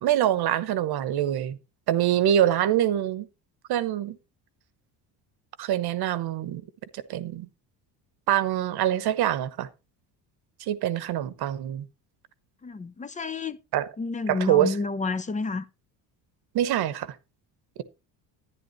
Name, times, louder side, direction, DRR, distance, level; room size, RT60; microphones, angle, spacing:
voice 1, 0.0-1.6 1.9-3.3 3.7-4.2 5.6-6.6 6.9-7.5 8.3-9.7 10.6-11.9 13.7-13.9 14.3-14.7 16.5-17.2, right 11 dB, 60° right, 1.0 m, -25 dB
voice 2, 12.6-13.6 14.0-15.7, left 4 dB, 15° left, 0.6 m, -30 dB
11.0 x 9.9 x 3.0 m
cardioid pair, 110°, 44 cm